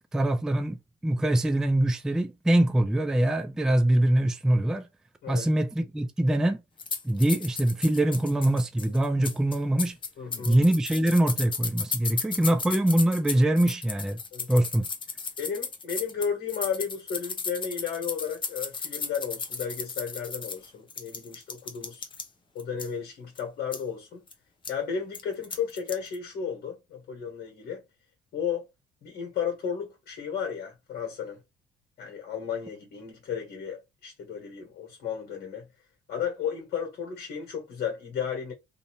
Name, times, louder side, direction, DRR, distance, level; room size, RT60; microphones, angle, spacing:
voice 1, 0.1-4.9 5.3-6.6 7.0-10.0 10.4-14.2 14.5-14.9, right 1 dB, 5° right, 0.3 m, -24 dB
sound 1, 6.8-22.3 22.6-22.9 23.4-23.5 23.7-23.8 24.3-24.4 24.6-24.7 25.1-26.2, left 5 dB, 30° left, 0.7 m, -34 dB
voice 2, 10.2-10.6 14.3-14.5 15.4-22.0 22.5-24.2 24.7-27.8 28.3-28.7 29.0-31.4 32.0-35.7 36.1-38.5, left 7 dB, 70° left, 1.4 m, -33 dB
2.6 x 2.6 x 2.9 m
cardioid pair, 110°, 17 cm